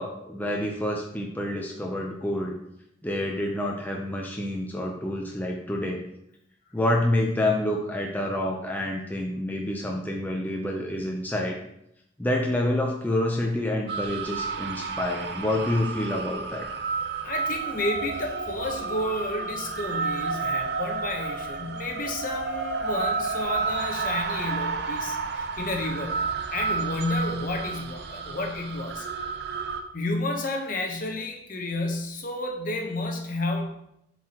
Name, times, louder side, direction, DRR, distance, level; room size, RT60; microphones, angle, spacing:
voice 1, 0.0-2.6 3.0-6.0 6.7-11.6 12.2-16.7, left 1 dB, 10° left, -1 dB, 0.6 m, -28 dB
sound 1, 13.9-29.8, right 4 dB, 60° right, 0.6 m, -31 dB
voice 2, 17.2-29.1 29.9-33.7, left 2 dB, 45° left, 3 dB, 0.9 m, -31 dB
7.3 x 4.7 x 2.9 m, 0.78 s
head